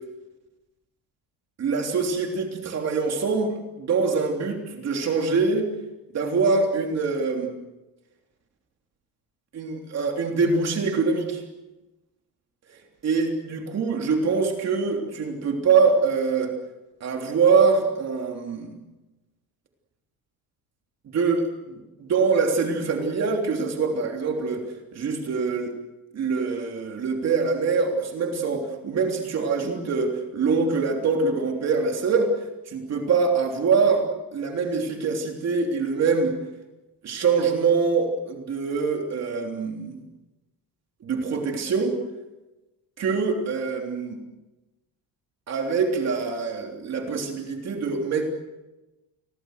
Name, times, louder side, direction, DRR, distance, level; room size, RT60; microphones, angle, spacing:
voice 1, 1.6-5.7 6.1-7.5 9.5-11.4 12.7-12.8 13.0-16.5 17.0-18.8 21.1-24.6 24.9-25.7 26.1-32.3 32.7-36.4 37.0-40.0 41.0-41.9 43.0-44.2 45.5-48.3, right 4 dB, 40° right, 2 dB, 3.4 m, -24 dB
29.5 x 22.5 x 6.5 m, 1.0 s
cardioid pair, 170°, 41 cm